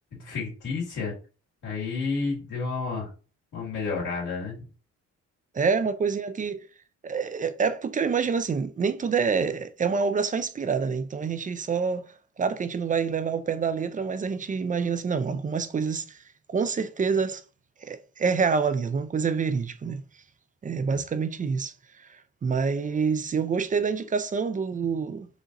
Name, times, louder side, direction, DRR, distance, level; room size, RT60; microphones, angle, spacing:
voice 1, 0.1-1.1 1.6-3.1 3.5-4.7, left 4 dB, 80° left, 2.2 m, -30 dB
voice 2, 5.5-6.6 7.0-12.0 12.4-16.2 16.5-17.4 17.8-20.0 20.6-25.3, right 5 dB, 25° right, 0.4 m, -27 dB
4.9 x 2.8 x 2.6 m
cardioid pair, 90°, 30 cm